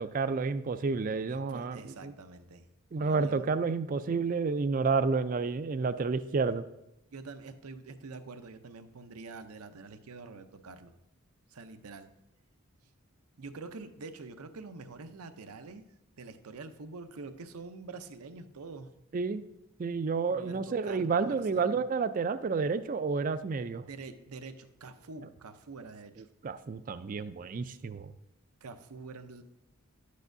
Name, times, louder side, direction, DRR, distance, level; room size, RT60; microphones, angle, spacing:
voice 1, 0.0-2.1 2.9-6.6 19.1-19.4 19.8-23.8 26.4-28.1, right 4 dB, 35° right, 12 dB, 0.3 m, -30 dB
voice 2, 1.3-2.7 2.9-3.5 7.1-10.9 11.5-12.1 13.4-15.8 16.2-18.9 20.3-21.8 23.9-26.3 28.6-29.4, right 3 dB, 80° right, 8 dB, 0.6 m, -46 dB
11.0 x 8.3 x 2.6 m, 0.86 s
head